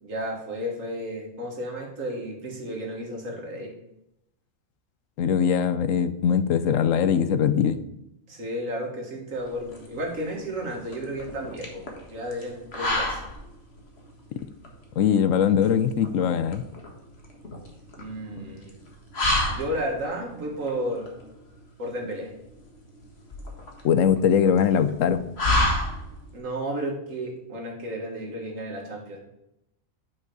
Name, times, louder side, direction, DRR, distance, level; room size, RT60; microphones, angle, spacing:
voice 1, 0.0-3.7 8.3-13.2 18.0-18.8 19.5-21.1 21.8-22.3 26.3-29.2, equal, 75° right, 1 dB, 2.1 m, -33 dB
voice 2, 5.2-7.8 15.0-16.7 23.8-25.2, left 7 dB, 80° left, 12 dB, 1.0 m, -21 dB
sound 1, 9.3-26.4, left 1 dB, 50° left, 1.8 m, -31 dB
9.2 x 5.4 x 4.7 m, 0.84 s
omnidirectional pair, 1.4 m